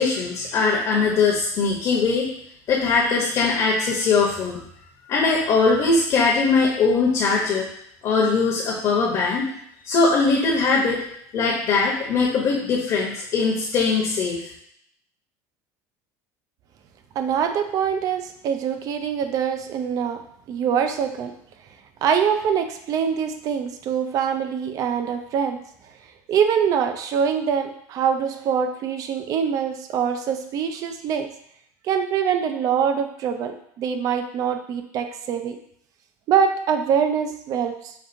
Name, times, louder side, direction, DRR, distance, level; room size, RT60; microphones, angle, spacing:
voice 1, 0.0-2.3 2.7-4.6 5.1-7.7 8.0-9.5 9.8-11.0 11.3-14.4, left 4 dB, 45° left, -2 dB, 0.8 m, -21 dB
voice 2, 17.2-20.2 20.5-21.3 22.0-25.6 26.3-31.3 31.8-35.6 36.3-37.9, right 7 dB, 45° right, 7 dB, 0.4 m, -24 dB
5.2 x 2.4 x 2.6 m, 0.70 s
supercardioid pair, 125°, 8 cm